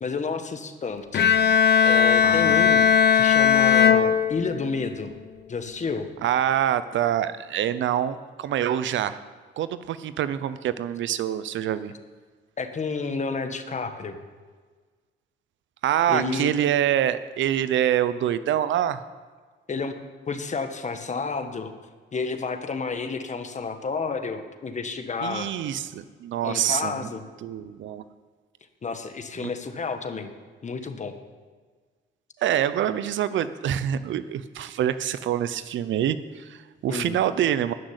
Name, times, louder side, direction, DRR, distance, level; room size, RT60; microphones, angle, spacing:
voice 1, 0.0-1.3 1.8-5.1 5.5-6.1 12.6-14.2 16.1-16.5 19.7-20.0 20.3-21.7 22.1-25.5 26.4-27.2 28.8-30.3 30.6-31.1 36.9-37.1, left 4 dB, 35° left, 8 dB, 1.4 m, -30 dB
Bowed string instrument, 1.1-4.9, left 8 dB, 55° left, 0.9 m, -18 dB
voice 2, 2.2-2.7 6.2-9.2 9.6-11.9 15.8-19.0 25.2-27.1 27.4-28.0 29.4-29.5 32.4-37.7, right 10 dB, 70° right, 14 dB, 0.7 m, -25 dB
13.0 x 6.3 x 9.8 m, 1.5 s
cardioid pair, 90°, 20 cm